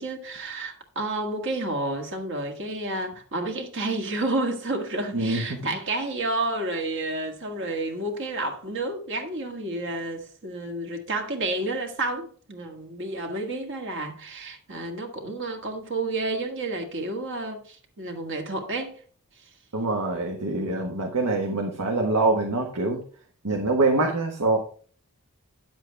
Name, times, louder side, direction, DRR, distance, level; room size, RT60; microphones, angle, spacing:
voice 1, 0.0-19.0, right 2 dB, 60° right, 1.7 m, -30 dB
voice 2, 19.7-23.0 23.4-24.6, right 2 dB, 85° right, 1.4 m, -24 dB
9.2 x 7.6 x 3.4 m
head